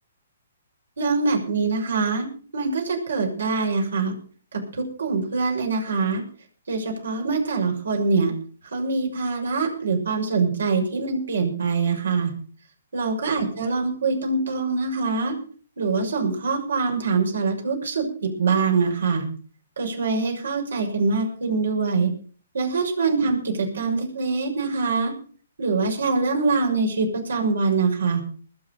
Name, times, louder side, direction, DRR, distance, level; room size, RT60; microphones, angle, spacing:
voice 1, 1.0-2.3 2.5-4.1 4.8-6.2 6.7-8.3 8.7-12.3 12.9-15.3 15.8-19.2 19.8-22.1 22.5-25.1 25.6-28.2, right 4 dB, 75° right, 1 dB, 6.3 m, -24 dB
20.0 x 7.6 x 6.7 m, 0.43 s
hypercardioid pair, 135°, 0 cm